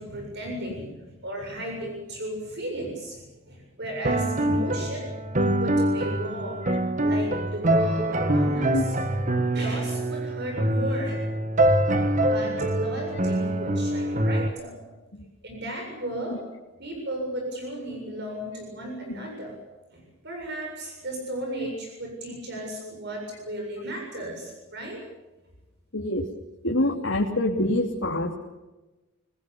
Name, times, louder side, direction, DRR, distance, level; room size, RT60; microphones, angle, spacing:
voice 1, 0.0-5.1 5.6-6.6 7.0-9.0 9.5-11.2 12.2-14.8 15.4-16.4 16.8-19.6 19.9-25.0, right 1 dB, 55° right, 2 dB, 7.4 m, -35 dB
sound 1, 4.0-14.5, right 1 dB, 40° right, 1.7 m, -24 dB
voice 2, 25.9-26.3 26.6-28.3, left 1 dB, 75° left, -1 dB, 3.1 m, -25 dB
28.0 x 21.0 x 7.1 m, 1.1 s
head